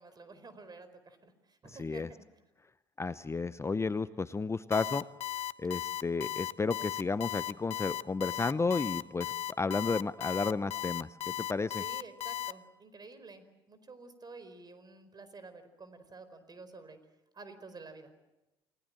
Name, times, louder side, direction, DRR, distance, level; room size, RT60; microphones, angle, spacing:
voice 1, 0.0-2.2 11.8-17.0 17.3-18.1, right 3 dB, 30° right, 11 dB, 4.6 m, -50 dB
voice 2, 1.7-2.1 3.0-5.0 5.6-11.8, left 4 dB, 20° left, 15 dB, 0.8 m, -32 dB
Alarm, 4.7-12.5, left 11 dB, 50° left, 1.0 m, -36 dB
29.0 x 19.5 x 7.7 m, 0.99 s
hypercardioid pair, 60°, 13 cm